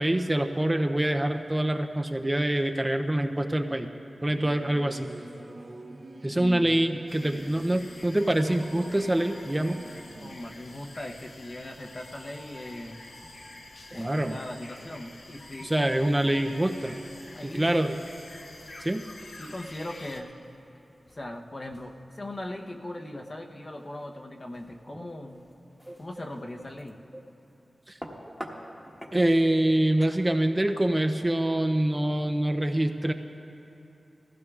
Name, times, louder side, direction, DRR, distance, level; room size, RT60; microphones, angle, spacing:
voice 1, 0.0-3.9 4.2-5.1 6.2-9.8 14.0-14.4 15.6-17.0 17.4-18.0 18.8-19.0 24.9-25.0 25.9-26.0 27.9-28.0 29.1-33.1, right 1 dB, 20° right, 5 dB, 0.5 m, -25 dB
Singing / Musical instrument, 4.1-10.4, right 2 dB, 50° right, 0.8 m, -46 dB
voice 2, 6.3-6.7 10.2-13.0 13.9-15.7 17.3-17.8 19.4-20.3 21.1-25.4 26.0-27.0, left 1 dB, 35° left, 2 dB, 0.8 m, -39 dB
sound 1, 7.1-20.2, left 2 dB, 70° left, 1.0 m, -47 dB
sound 2, 13.1-31.3, equal, 5° left, 1.2 m, -51 dB
19.5 x 15.5 x 2.4 m, 2.9 s
wide cardioid pair, 95°, 0 cm